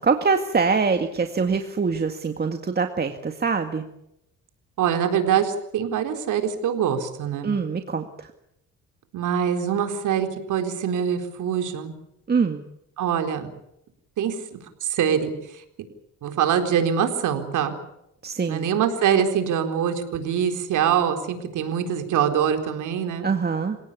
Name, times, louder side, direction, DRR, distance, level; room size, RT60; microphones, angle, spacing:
voice 1, 0.0-3.9 7.4-8.3 12.3-12.6 18.2-18.7 23.2-23.8, right 5 dB, 35° right, 6 dB, 2.0 m, -24 dB
voice 2, 4.8-7.5 9.1-11.9 13.0-13.5 14.2-15.6 16.2-17.7 18.5-23.3, right 8 dB, 80° right, 6 dB, 4.3 m, -24 dB
28.5 x 17.5 x 8.5 m, 0.80 s
cardioid pair, 90°, 30 cm